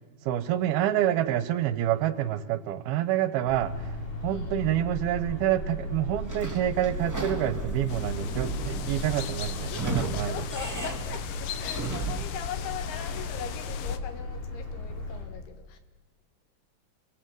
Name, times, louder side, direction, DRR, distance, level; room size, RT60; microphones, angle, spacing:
voice 1, 0.3-3.9 4.2-10.4, right 12 dB, 80° right, 12 dB, 2.9 m, -27 dB
sound 1, 3.5-15.3, left 1 dB, 55° left, 6.2 m, -36 dB
voice 2, 4.2-4.8 9.6-15.8, left 7 dB, 85° left, 8 dB, 3.9 m, -40 dB
Sliding door / Squeak, 6.3-12.4, right 3 dB, 25° right, 0.3 m, -35 dB
sound 2, 7.9-14.0, left 9 dB, 70° left, 2.4 m, -38 dB
28.0 x 23.0 x 7.9 m, 1.2 s
omnidirectional pair, 4.5 m